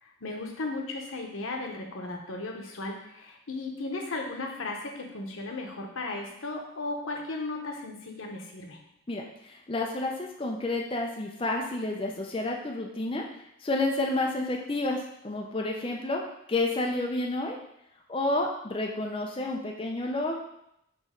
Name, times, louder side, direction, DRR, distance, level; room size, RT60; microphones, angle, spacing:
voice 1, 0.0-8.8, left 2 dB, 85° left, 1 dB, 1.0 m, -36 dB
voice 2, 9.1-13.2 13.6-16.2 16.5-17.6 18.1-20.4, left 2 dB, 25° left, 0 dB, 0.5 m, -30 dB
6.1 x 3.1 x 5.1 m, 0.79 s
head